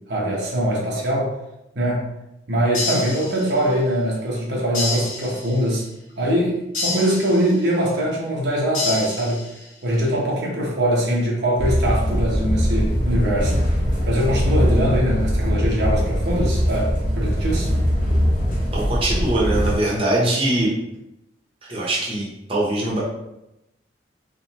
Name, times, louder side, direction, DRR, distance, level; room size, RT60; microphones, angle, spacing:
voice 1, 0.1-1.3 1.7-2.1 2.5-5.8 6.2-9.4 9.8-13.8 14.1-17.7, equal, 60° right, -4 dB, 0.9 m, -22 dB
sound 1, 2.7-3.8 4.7-5.8 6.7-7.8 8.7-9.8, left 3 dB, 90° left, 1.3 m, -29 dB
sound 2, 11.6-19.8, equal, 45° left, 1.3 m, -21 dB
voice 2, 18.7-20.7 21.7-23.0, right 1 dB, 30° right, -5 dB, 1.0 m, -22 dB
3.7 x 3.4 x 2.9 m, 0.89 s
head